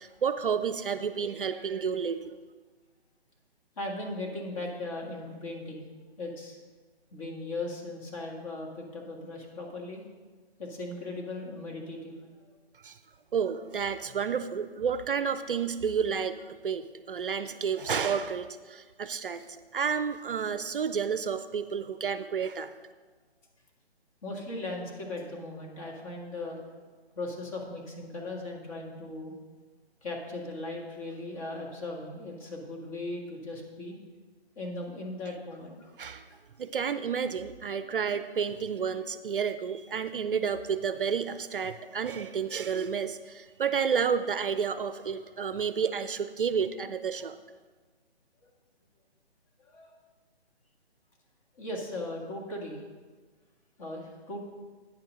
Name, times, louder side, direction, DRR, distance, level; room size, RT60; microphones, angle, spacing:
voice 1, 0.0-2.4 12.8-13.0 13.3-19.5 19.7-22.7 36.0-36.2 36.6-47.4, right 6 dB, 55° right, 11 dB, 0.5 m, -30 dB
voice 2, 3.8-5.9 6.2-6.6 7.1-10.0 10.6-12.2 12.5-12.6 24.2-26.8 27.1-29.4 30.0-34.0 34.6-35.9 36.3-36.4 49.6-49.9 51.6-52.8 53.8-54.4, left 2 dB, 30° left, -1 dB, 1.9 m, -38 dB
9.1 x 5.9 x 6.4 m, 1.4 s
figure-of-eight pair, 150°, 33 cm